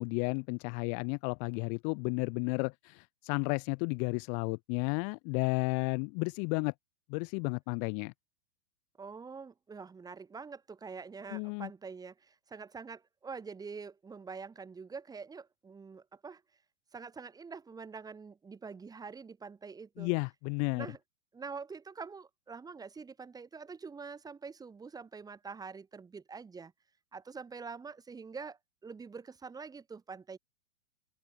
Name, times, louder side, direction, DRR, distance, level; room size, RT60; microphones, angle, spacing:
voice 1, 0.0-6.7 7.1-8.1 11.3-11.7 20.0-20.9, left 40 dB or more, 25° left, 0.3 m, -33 dB
voice 2, 9.0-16.4 16.9-20.1 20.7-21.0 21.3-26.7 27.1-30.4, right 5 dB, 10° right, 1.5 m, -45 dB
open air
hypercardioid pair, 125°, 35 cm